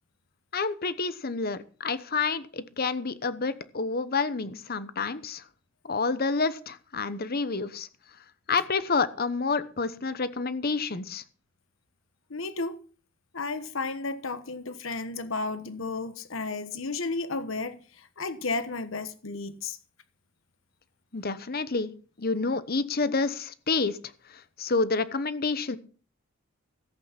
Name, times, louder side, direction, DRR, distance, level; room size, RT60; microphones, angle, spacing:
voice 1, 0.5-5.4 5.8-7.9 8.5-11.2 21.1-21.9 22.2-24.0 24.3-25.8, left 4 dB, 45° left, 0.9 m, -29 dB
voice 2, 12.3-12.8 13.3-19.8, left 3 dB, 70° left, 1.2 m, -33 dB
14.5 x 8.4 x 5.8 m
head